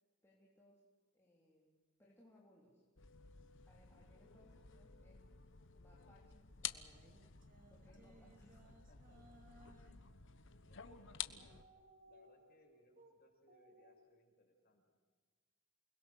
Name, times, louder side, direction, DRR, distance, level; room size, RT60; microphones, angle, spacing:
voice 1, 0.2-2.8 3.6-5.2 5.8-7.0 7.7-8.6, left 1 dB, 10° left, -4 dB, 3.6 m, -68 dB
sound 1, 3.0-11.6, left 9 dB, 65° left, 1.2 m, -51 dB
sound 2, 6.9-10.1 10.8-11.0 11.3-13.1 13.5-14.0, right 1 dB, 40° right, 2.9 m, -65 dB
voice 2, 8.6-9.4 10.0-10.2 10.6-11.6 12.0-14.9, left 1 dB, 45° left, 0 dB, 6.1 m, -70 dB
28.5 x 21.0 x 6.5 m, 1.5 s
head